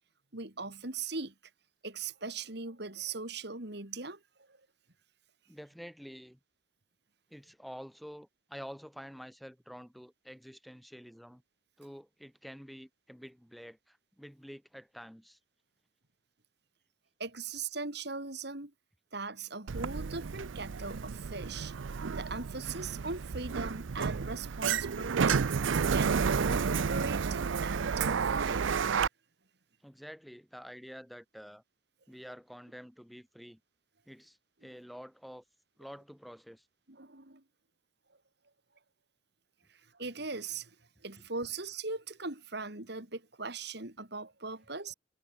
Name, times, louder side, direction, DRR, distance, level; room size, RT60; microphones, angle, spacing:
voice 1, 0.3-1.3 1.8-4.2 4.5-4.6 17.2-18.7 19.1-21.9 22.1-25.5 25.9-28.8 36.9-37.4 39.7-40.8 41.0-44.9, right 3 dB, 55° right, 2.9 m, -40 dB
voice 2, 5.5-6.4 7.3-11.4 11.8-15.4 29.8-31.6 32.1-33.6 34.1-35.4 35.8-36.7, equal, ahead, 5.0 m, -48 dB
Sliding door, 19.7-29.1, right 6 dB, 80° right, 0.5 m, -31 dB
head